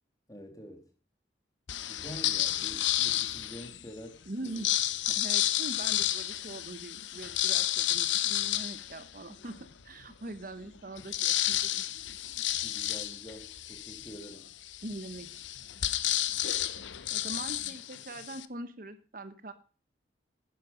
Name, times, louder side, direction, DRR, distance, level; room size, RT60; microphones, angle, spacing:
voice 1, 0.3-0.9 1.9-4.6 12.6-14.5 17.2-17.6, equal, 20° left, 4 dB, 2.8 m, -47 dB
sound 1, 1.7-3.8 4.4-9.6 10.1-10.2 10.4-18.4, left 13 dB, 85° left, 0.8 m, -31 dB
voice 2, 4.3-4.7 5.2-9.6 9.8-11.8 14.8-15.4 17.1-19.5, right 2 dB, 50° right, 12 dB, 1.0 m, -42 dB
11.5 x 10.0 x 5.1 m, 0.36 s
head